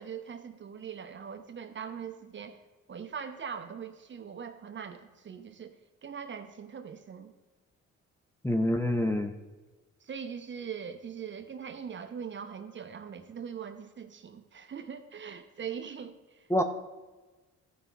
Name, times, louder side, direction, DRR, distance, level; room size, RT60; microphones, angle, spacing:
voice 1, 0.0-2.6 2.9-5.7 6.0-7.3 10.0-16.5, right 7 dB, 40° right, 7 dB, 0.8 m, -41 dB
voice 2, 8.4-9.4 16.5-16.6, left 1 dB, 10° left, 6 dB, 0.6 m, -26 dB
14.0 x 5.1 x 4.6 m, 1.2 s
cardioid pair, 90°, 30 cm